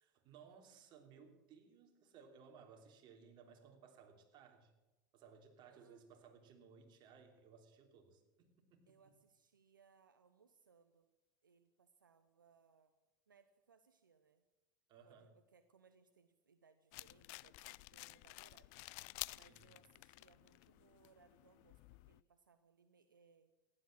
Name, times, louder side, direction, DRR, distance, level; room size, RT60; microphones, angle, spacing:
voice 1, 0.0-4.7 5.1-8.8 14.9-15.3 19.3-19.7, right 6 dB, 45° right, 4 dB, 3.0 m, -61 dB
voice 2, 5.7-6.0 8.9-11.1 11.4-12.9 13.3-14.4 15.0-23.5, right 5 dB, 85° right, 10 dB, 0.8 m, -70 dB
sound 1, 16.9-22.2, left 25 dB, 55° left, 0.4 m, -52 dB
15.0 x 11.0 x 7.6 m, 1.1 s
hypercardioid pair, 85°, 11 cm